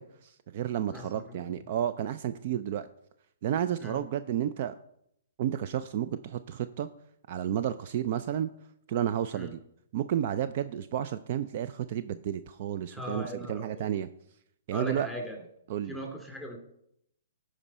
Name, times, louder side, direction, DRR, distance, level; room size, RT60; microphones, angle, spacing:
voice 1, 0.0-2.9 3.4-4.8 5.4-6.9 7.3-8.5 8.9-9.6 9.9-14.1 14.7-15.1 15.7-16.0, right 10 dB, 50° right, 12 dB, 0.4 m, -31 dB
voice 2, 0.9-1.5 3.8-4.0 9.3-9.5 12.9-13.9 14.7-15.4 15.9-16.6, left 1 dB, 5° right, 0 dB, 2.4 m, -39 dB
13.5 x 5.0 x 4.2 m, 0.74 s
hypercardioid pair, 125°, 0 cm